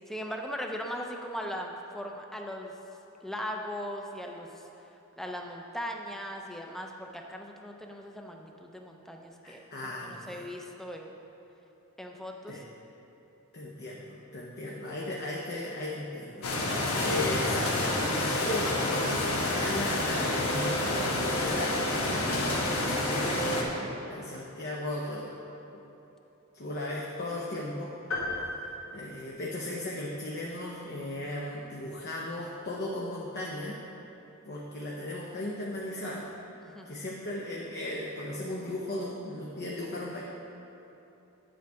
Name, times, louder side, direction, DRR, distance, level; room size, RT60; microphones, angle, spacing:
voice 1, 0.1-2.7 3.2-4.6 5.2-9.6 10.0-11.1 12.0-12.6 36.6-36.9, equal, ahead, 2 dB, 0.5 m, -39 dB
voice 2, 9.4-10.4 12.5-12.6 13.5-25.4 26.5-33.8 34.4-36.3 36.9-40.2, left 1 dB, 50° left, -3 dB, 0.7 m, -36 dB
sound 1, 16.4-23.6, left 1 dB, 90° left, 1.1 m, -28 dB
sound 2, 28.1-29.9, left 2 dB, 65° left, 1.7 m, -36 dB
9.1 x 7.6 x 3.5 m, 3.0 s
head